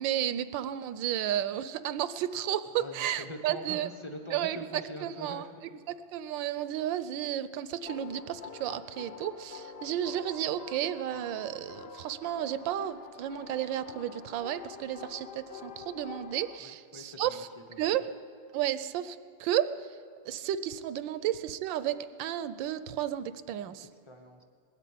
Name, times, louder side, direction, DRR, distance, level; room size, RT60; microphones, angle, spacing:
voice 1, 0.0-3.9 4.3-5.4 5.9-17.5 17.8-18.0 18.5-20.0 20.2-23.9, right 11 dB, 75° right, 14 dB, 1.2 m, -32 dB
voice 2, 2.8-5.7 16.6-17.4 17.7-17.9 24.0-24.4, equal, 25° left, 3 dB, 0.7 m, -44 dB
sound 1, 7.9-16.6, left 6 dB, 80° left, 0.5 m, -46 dB
20.0 x 8.3 x 8.5 m, 2.3 s
omnidirectional pair, 2.2 m